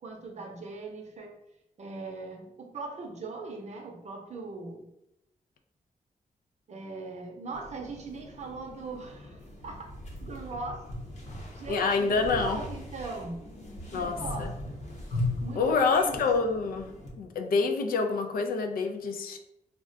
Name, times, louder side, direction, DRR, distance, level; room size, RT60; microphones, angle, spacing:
voice 1, 0.0-1.4 1.8-4.9 6.7-9.9 10.2-10.8 11.5-13.4 13.9-14.6 15.4-16.3, right 3 dB, 50° right, 2 dB, 0.6 m, -40 dB
sound 1, 7.5-17.1, left 2 dB, 50° left, 0.8 m, -39 dB
voice 2, 11.7-12.6 13.9-14.5 15.6-16.9 17.2-19.4, left 4 dB, 85° left, 5 dB, 0.4 m, -27 dB
2.3 x 2.1 x 3.7 m, 0.83 s
wide cardioid pair, 110°, 15 cm